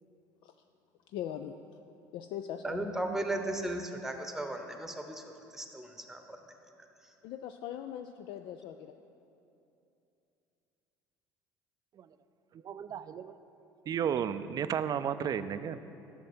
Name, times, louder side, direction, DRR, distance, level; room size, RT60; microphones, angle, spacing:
voice 1, 1.1-1.6 2.1-2.8 7.2-9.0, left 10 dB, 55° left, 7 dB, 0.3 m, -40 dB
voice 2, 2.6-5.2 5.5-6.4, right 1 dB, 5° right, 5 dB, 1.0 m, -36 dB
voice 3, 12.6-13.3 13.9-15.8, right 8 dB, 40° right, 12 dB, 0.4 m, -33 dB
11.0 x 6.5 x 4.4 m, 2.8 s
hypercardioid pair, 60°, 10 cm